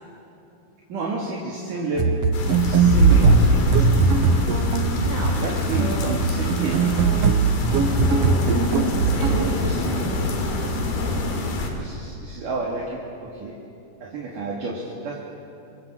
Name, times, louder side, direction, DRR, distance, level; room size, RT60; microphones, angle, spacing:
voice 1, 0.9-2.2 2.7-3.4 5.4-6.8 8.0-8.3 9.3-9.9 11.8-13.6 14.0-15.3, right 3 dB, 60° right, -3 dB, 3.8 m, -31 dB
sound 1, 2.0-9.6, right 6 dB, 80° right, 1.3 m, -20 dB
sound 2, 2.3-11.7, left 3 dB, 85° left, 4.6 m, -24 dB
voice 2, 5.0-5.5 5.7-6.1 8.7-10.4, right 1 dB, 30° right, -3 dB, 7.4 m, -33 dB
27.5 x 25.0 x 7.6 m, 2.7 s
omnidirectional pair, 4.3 m